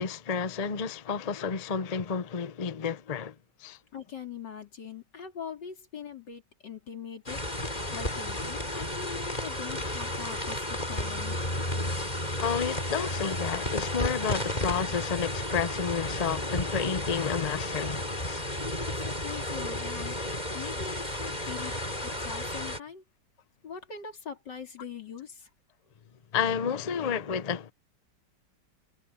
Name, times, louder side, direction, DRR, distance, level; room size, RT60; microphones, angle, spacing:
voice 1, 0.0-3.3 3.6-3.8 12.4-18.4 26.3-27.7, left 6 dB, 55° left, 0.4 m, -31 dB
voice 2, 3.9-11.5 18.8-20.2 20.5-23.0 23.6-25.5, left 6 dB, 70° left, 3.6 m, -42 dB
sound 1, 7.3-22.8, left 1 dB, 20° left, 5.6 m, -33 dB
omnidirectional pair, 1.9 m